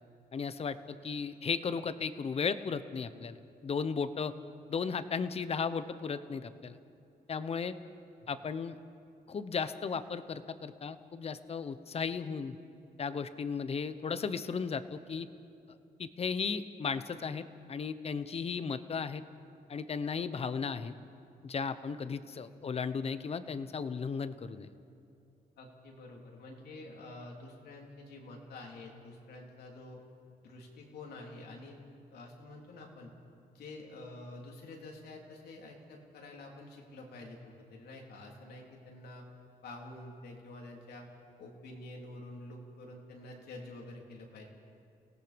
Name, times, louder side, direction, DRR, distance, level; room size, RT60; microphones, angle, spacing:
voice 1, 0.3-3.4 3.6-4.3 4.7-6.8 7.3-7.7 8.3-8.8 9.3-12.6 13.0-15.3 16.0-19.2 19.7-20.9 21.4-24.7, left 5 dB, 40° left, 12 dB, 0.9 m, -35 dB
voice 2, 25.6-30.0 30.4-31.8 32.1-33.1 33.5-39.2 39.6-41.1 41.4-44.5, left 2 dB, 85° left, 0 dB, 3.4 m, -48 dB
30.0 x 18.0 x 5.2 m, 2.5 s
cardioid pair, 130°, 16 cm